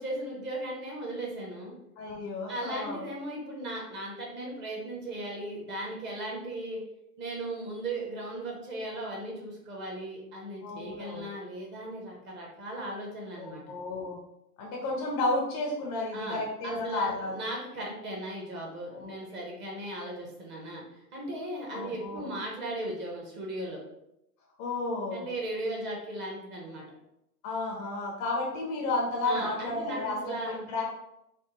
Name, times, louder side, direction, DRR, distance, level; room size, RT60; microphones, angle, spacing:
voice 1, 0.0-1.7 2.5-6.8 7.2-13.6 16.1-23.8 25.1-26.8 29.2-30.6, right 1 dB, 25° right, -2 dB, 0.9 m, -37 dB
voice 2, 2.0-3.0 10.6-11.3 13.4-14.2 14.6-17.4 18.9-19.1 21.7-22.3 24.6-25.3 27.4-30.9, left 2 dB, 30° left, -2 dB, 0.6 m, -32 dB
3.4 x 2.1 x 3.1 m, 0.83 s
hypercardioid pair, 110°, 46 cm